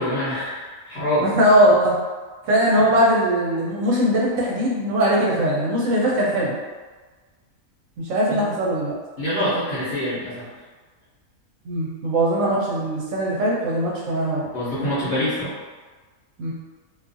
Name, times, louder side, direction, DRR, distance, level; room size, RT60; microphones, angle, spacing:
voice 1, 0.0-1.3 2.8-2.9 8.3-8.4 9.2-10.5 14.5-15.5, equal, 50° left, -12 dB, 1.0 m, -25 dB
voice 2, 1.2-1.9 2.5-6.5 8.0-8.9 11.6-14.5 16.4-16.5, equal, 70° right, -4 dB, 0.9 m, -20 dB
2.5 x 2.3 x 2.5 m, 1.4 s
omnidirectional pair, 1.5 m